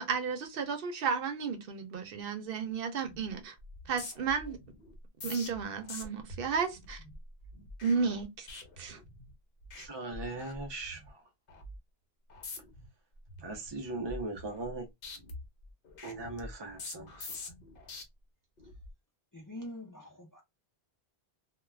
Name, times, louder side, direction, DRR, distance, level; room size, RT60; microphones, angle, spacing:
voice 1, 0.0-3.5 3.9-4.6 5.2-7.0 7.8-8.5 8.8-9.0, right 5 dB, 65° right, 0.8 m, -33 dB
sound 1, 3.0-3.3 3.6-9.3 9.6-9.9 10.1-11.1 11.5-11.8 12.3-12.9 13.3-14.8 15.0-18.0 18.6-18.9, left 3 dB, 60° left, 0.9 m, -46 dB
voice 2, 9.8-11.2 13.4-14.9 16.0-17.4, right 2 dB, 45° right, 0.3 m, -39 dB
voice 3, 19.3-20.4, left 1 dB, 30° left, 0.4 m, -44 dB
2.3 x 2.2 x 3.1 m
omnidirectional pair, 1.0 m